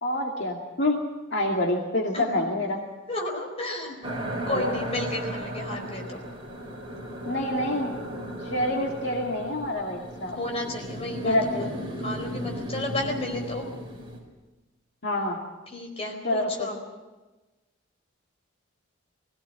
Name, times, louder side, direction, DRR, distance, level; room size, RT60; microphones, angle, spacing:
voice 1, 0.0-1.0 1.3-2.8 4.5-4.7 7.3-7.9 8.4-10.4 11.2-11.7 15.0-15.4 16.2-16.7, left 1 dB, 60° left, 0 dB, 2.3 m, -27 dB
voice 2, 2.1-2.5 3.1-4.1 4.5-6.2 10.3-11.7 12.0-13.7 15.7-16.8, left 1 dB, 30° left, 2 dB, 4.6 m, -32 dB
sound 1, 4.0-14.2, right 1 dB, 25° right, 5.1 m, -35 dB
21.5 x 16.5 x 9.0 m, 1.2 s
head